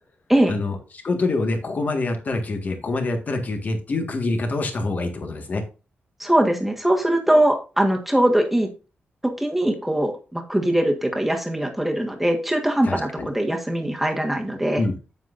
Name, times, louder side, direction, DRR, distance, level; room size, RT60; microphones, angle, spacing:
voice 1, 1.0-5.6 12.8-13.3 14.8-14.9, left 2 dB, 45° left, 5 dB, 1.8 m, -25 dB
voice 2, 6.2-8.7 9.4-14.8, right 1 dB, 5° right, 2 dB, 1.6 m, -21 dB
9.1 x 8.3 x 2.6 m, 0.33 s
wide cardioid pair, 155°, 4 cm